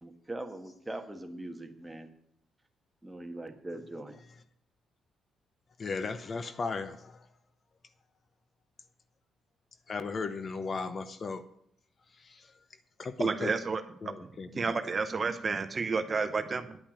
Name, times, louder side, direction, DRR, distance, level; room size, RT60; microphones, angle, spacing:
voice 1, 0.0-2.1 3.0-4.1, right 1 dB, 10° right, 6 dB, 1.3 m, -41 dB
voice 2, 5.8-7.3 9.9-11.4 12.2-12.5 13.0-13.5 14.0-14.8, left 4 dB, 40° left, 12 dB, 0.8 m, -36 dB
voice 3, 13.2-16.8, right 4 dB, 35° right, 10 dB, 0.8 m, -31 dB
10.0 x 5.6 x 8.6 m, 0.69 s
cardioid pair, 90°, 0 cm